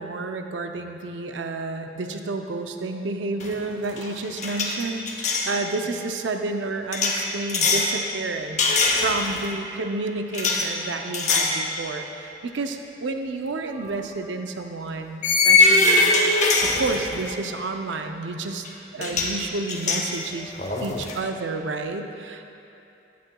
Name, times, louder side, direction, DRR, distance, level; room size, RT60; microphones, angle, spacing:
voice 1, 0.0-8.7 9.0-16.1 16.6-18.7 18.9-20.5 20.8-22.5, right 3 dB, 85° right, 5 dB, 0.6 m, -30 dB
sound 1, 3.4-3.6 3.9-5.5 6.9-7.9 8.6-9.5 10.3-10.7 11.1-11.6 12.0-12.2 13.7-13.9 15.2-17.3 18.6-18.7 19.0-19.4 19.7-21.2, left 3 dB, 40° left, 0.8 m, -22 dB
14.0 x 9.4 x 2.3 m, 2.9 s
head